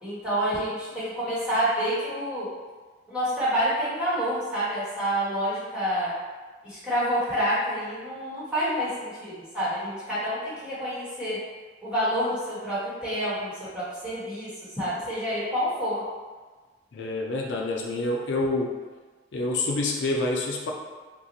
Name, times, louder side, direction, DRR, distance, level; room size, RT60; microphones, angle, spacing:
voice 1, 0.0-2.5 3.1-6.1 6.6-11.4 11.8-14.5 14.8-16.0, equal, 5° right, -11 dB, 1.3 m, -28 dB
voice 2, 16.9-18.7 19.3-20.7, left 2 dB, 75° left, 0 dB, 0.4 m, -27 dB
3.0 x 2.4 x 3.9 m, 1.4 s
head